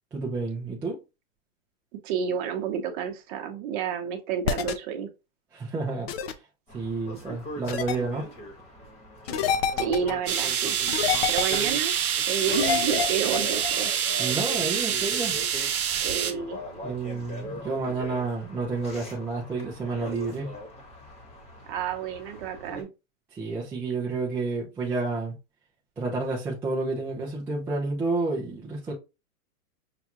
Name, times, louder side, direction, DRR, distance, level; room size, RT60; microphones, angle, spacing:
voice 1, 0.1-1.0 5.5-6.1 6.7-8.3 14.2-15.4 16.8-20.5 23.3-25.3 26.0-28.9, right 3 dB, 5° right, 0.4 m, -30 dB
voice 2, 2.0-5.1 9.8-10.8 11.3-11.9 12.3-13.9 16.0-16.6 21.7-22.9, right 8 dB, 35° right, 0.8 m, -30 dB
sound 1, 4.4-4.7 6.1-6.3 7.7-8.0 9.3-10.1 10.9-11.7 12.5-13.7, left 8 dB, 45° left, 0.6 m, -27 dB
sound 2, 6.7-22.8, left 1 dB, 15° left, 1.1 m, -41 dB
sound 3, 10.3-16.3, right 9 dB, 85° right, 0.9 m, -26 dB
5.8 x 2.3 x 2.9 m
hypercardioid pair, 135°, 42 cm